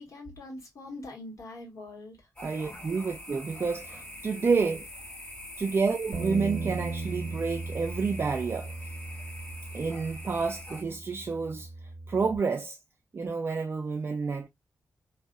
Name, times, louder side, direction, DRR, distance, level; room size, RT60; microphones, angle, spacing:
voice 1, 0.0-2.3, left 2 dB, 70° left, 1.6 m, -43 dB
sound 1, 2.4-10.8, left 1 dB, 25° left, 1.7 m, -44 dB
voice 2, 2.4-4.9 5.6-8.7 9.7-11.7 12.1-12.8 13.1-14.5, right 4 dB, 40° right, 0.4 m, -29 dB
Bass guitar, 6.1-12.4, right 3 dB, 60° right, 0.8 m, -37 dB
2.7 x 2.5 x 2.3 m
wide cardioid pair, 95°, 6 cm